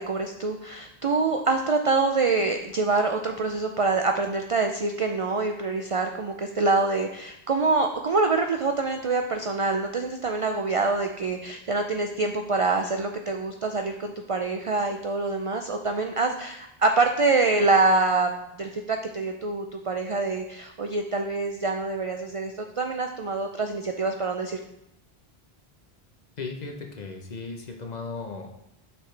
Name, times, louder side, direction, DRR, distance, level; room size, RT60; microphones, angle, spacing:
voice 1, 0.0-18.3 18.6-24.6, right 3 dB, 55° right, 4 dB, 0.4 m, -25 dB
voice 2, 26.4-28.6, left 4 dB, 45° left, 2 dB, 0.9 m, -36 dB
6.6 x 6.0 x 3.3 m, 0.83 s
omnidirectional pair, 1.1 m